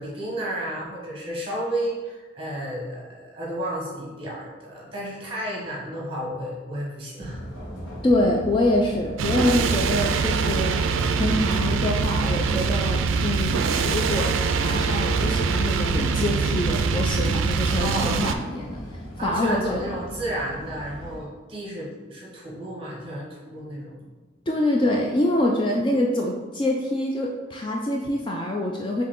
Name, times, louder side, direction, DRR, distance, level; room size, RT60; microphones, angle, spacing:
voice 1, 0.0-7.4 17.8-18.2 19.2-24.1, right 1 dB, 30° right, -4 dB, 1.1 m, -32 dB
sound 1, 7.2-21.2, equal, 85° left, 1.4 m, -38 dB
voice 2, 8.0-10.8 11.1-18.8 19.2-19.9 24.5-29.0, left 1 dB, 25° left, 0 dB, 0.3 m, -25 dB
sound 2, 9.2-18.3, right 5 dB, 90° right, 0.3 m, -23 dB
4.7 x 3.1 x 3.6 m, 1.3 s
head